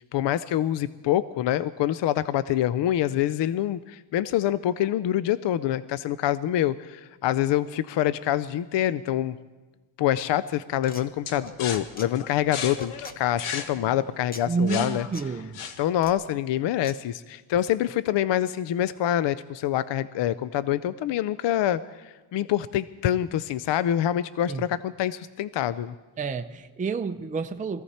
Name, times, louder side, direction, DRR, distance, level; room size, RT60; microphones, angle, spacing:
voice 1, 0.1-9.4 10.0-15.1 15.8-25.9, left 12 dB, 60° left, 15 dB, 0.5 m, -26 dB
sound 1, 10.7-11.0 11.5-12.1 12.5-13.2 14.3-14.4 15.1-15.3 15.9-16.1 16.8-17.0, left 2 dB, 20° left, 1.0 m, -43 dB
sound 2, 11.3-16.1, left 7 dB, 75° left, 1.3 m, -36 dB
voice 2, 14.5-15.6 24.5-24.6 26.2-27.8, right 4 dB, 15° right, 6 dB, 0.6 m, -29 dB
21.5 x 15.5 x 4.3 m, 1.2 s
cardioid pair, 110°, 50 cm